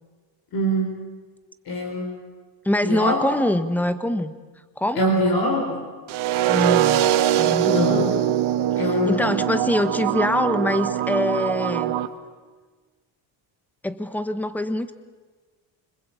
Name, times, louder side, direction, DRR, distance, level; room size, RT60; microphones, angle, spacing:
voice 1, 0.5-1.0 1.7-2.2 2.8-3.2 5.0-5.8 7.7-8.2 8.8-9.3, equal, 50° left, 2 dB, 4.1 m, -23 dB
voice 2, 2.6-4.3 4.8-5.1 6.5-7.1 7.4-8.1 8.8-12.0 13.8-14.9, left 1 dB, 5° left, 11 dB, 1.2 m, -24 dB
sound 1, 6.1-12.1, right 12 dB, 70° right, 1.8 m, -22 dB
26.0 x 25.5 x 8.6 m, 1.4 s
cardioid pair, 155°, 49 cm